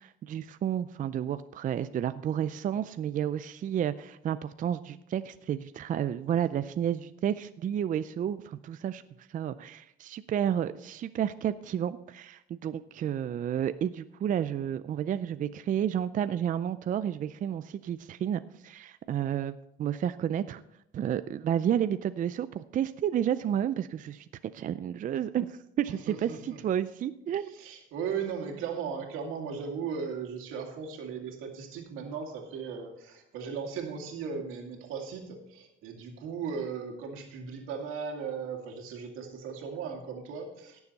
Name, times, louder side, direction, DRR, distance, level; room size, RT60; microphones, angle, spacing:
voice 1, 0.0-9.0 9.3-20.6 20.9-24.3 24.5-27.5, right 9 dB, 40° right, 12 dB, 0.4 m, -31 dB
voice 2, 25.8-26.6 27.5-40.8, right 6 dB, 90° right, 2 dB, 2.2 m, -37 dB
17.5 x 7.1 x 4.1 m, 0.81 s
cardioid pair, 110°, 20 cm